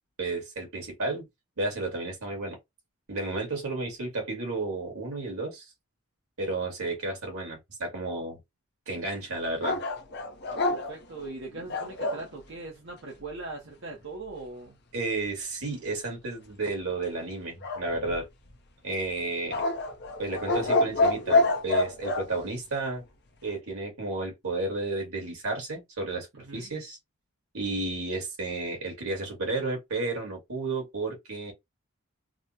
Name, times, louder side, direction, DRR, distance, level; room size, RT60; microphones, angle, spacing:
voice 1, 0.2-1.2 1.6-2.6 3.1-5.7 6.4-8.4 8.9-9.8 14.9-18.3 18.8-19.6 20.2-23.0 23.4-27.0 27.5-31.5, right 2 dB, 80° right, 2.0 m, -32 dB
sound 1, 9.6-12.3 17.6-18.5 19.5-22.3, left 2 dB, 50° left, 0.7 m, -27 dB
voice 2, 10.7-14.8 26.4-26.8, right 3 dB, 55° right, 0.8 m, -40 dB
4.1 x 2.1 x 2.8 m
head